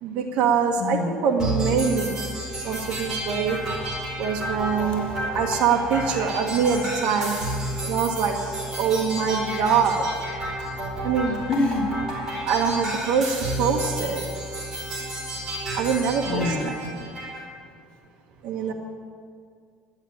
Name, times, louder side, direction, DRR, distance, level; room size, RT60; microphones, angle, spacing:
voice 1, 0.0-2.2 2.6-3.6 4.2-5.1 5.3-7.3 7.8-8.3 8.8-10.1 11.0-11.4 12.4-14.2 15.7-16.8 18.4-18.7, right 6 dB, 65° right, 0 dB, 1.3 m, -24 dB
voice 2, 0.8-1.1 4.8-5.1 11.2-11.9 16.3-17.0, left 3 dB, 55° left, 3 dB, 1.4 m, -27 dB
sound 1, 1.4-17.4, right 1 dB, 25° right, 4.5 m, -31 dB
11.5 x 11.0 x 8.5 m, 2.1 s
cardioid pair, 155°, 2 cm